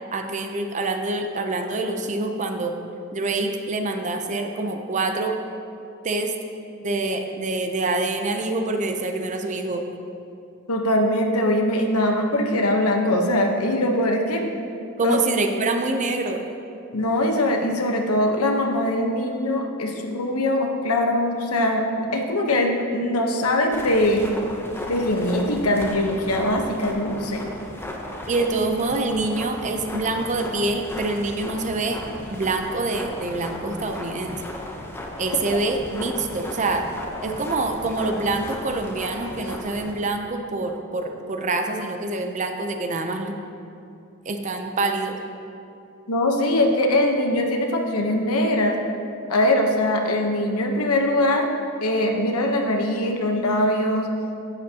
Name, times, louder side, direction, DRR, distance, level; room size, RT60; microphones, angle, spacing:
voice 1, 0.1-2.7 3.1-5.4 6.0-6.3 6.8-9.8 15.0-16.4 28.3-32.0 32.3-34.4 35.2-36.8 37.2-43.3 44.3-45.2, right 2 dB, 35° right, 4 dB, 0.5 m, -26 dB
voice 2, 10.7-14.4 15.0-15.2 16.9-24.3 24.9-27.4 46.1-48.8 49.3-51.5 51.8-54.1, left 1 dB, 90° left, 2 dB, 1.0 m, -22 dB
sound 1, 23.7-39.9, left 1 dB, 10° left, 0.7 m, -36 dB
10.5 x 8.6 x 2.8 m, 2.6 s
head